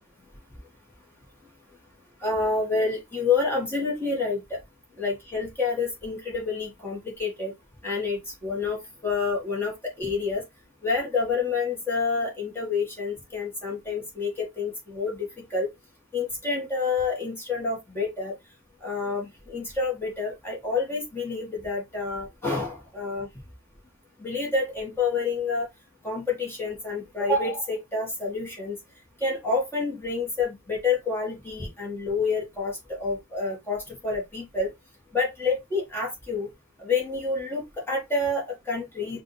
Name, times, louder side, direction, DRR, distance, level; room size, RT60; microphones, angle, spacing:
voice 1, 2.2-4.6 5.0-7.5 7.8-8.8 9.0-10.4 10.8-15.7 16.1-18.3 18.8-23.3 24.2-25.7 26.0-28.8 29.2-34.7 35.1-36.5 36.8-39.2, left 4 dB, 10° left, 1.9 m, -28 dB
5.6 x 2.7 x 3.4 m
head